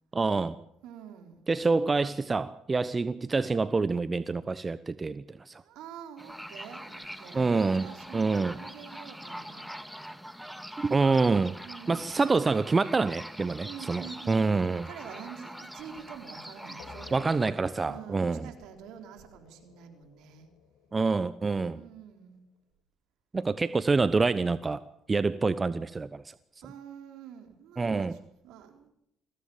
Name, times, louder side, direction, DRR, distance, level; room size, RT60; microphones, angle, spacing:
voice 1, 0.1-0.5 1.5-5.6 7.3-7.9 8.1-8.6 10.8-11.6 11.9-14.8 17.1-18.5 20.9-21.8 23.3-24.8 25.1-26.3 27.8-28.1, right 4 dB, 25° right, 15 dB, 1.0 m, -26 dB
voice 2, 0.8-1.5 5.5-9.7 11.6-12.2 13.6-17.4 17.8-20.5 21.7-22.5 26.6-28.9, right 8 dB, 70° right, 6 dB, 4.2 m, -47 dB
sound 1, 6.2-17.5, equal, ahead, 2.1 m, -43 dB
sound 2, 16.8-22.1, left 6 dB, 70° left, 2.5 m, -53 dB
22.0 x 16.5 x 7.3 m, 0.76 s
supercardioid pair, 65°, 0 cm